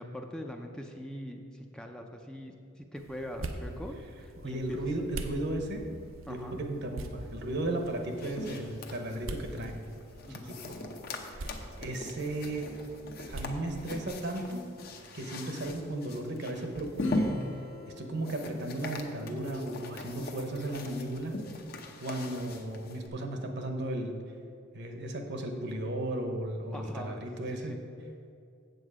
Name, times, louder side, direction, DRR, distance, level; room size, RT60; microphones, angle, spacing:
voice 1, 0.0-4.9 6.3-6.6 10.3-10.5 26.7-27.8, equal, 5° left, 3 dB, 0.5 m, -42 dB
sound 1, 3.0-14.1, right 2 dB, 90° right, 0.7 m, -44 dB
voice 2, 4.4-5.8 6.3-9.8 10.3-10.7 11.3-11.5 11.8-12.7 13.3-14.7 15.1-17.4 18.0-21.4 22.0-24.2 24.7-27.7, right 1 dB, 60° right, 4 dB, 1.0 m, -35 dB
sound 2, 7.8-23.1, left 2 dB, 50° left, 0.8 m, -40 dB
Acoustic guitar / Strum, 17.0-19.9, equal, 75° left, 1.0 m, -41 dB
8.0 x 7.4 x 4.9 m, 2.6 s
head